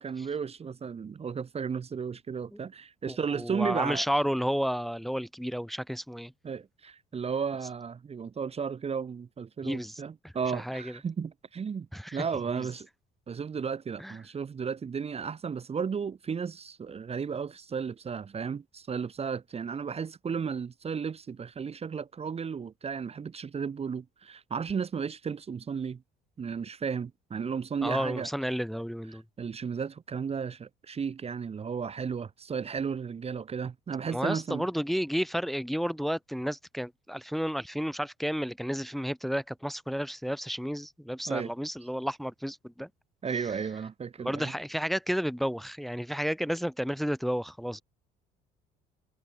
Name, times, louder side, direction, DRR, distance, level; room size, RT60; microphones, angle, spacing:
voice 1, 0.0-4.0 6.4-12.9 13.3-26.0 26.4-28.3 29.1-34.7 41.3-41.5 43.2-44.5, right 6 dB, 35° right, 1.3 m, -34 dB
voice 2, 3.1-6.3 9.6-10.9 11.9-12.2 12.5-12.7 14.0-14.1 27.8-29.2 34.1-42.9 44.2-47.8, equal, ahead, 1.3 m, -32 dB
supercardioid pair, 85°, 19 cm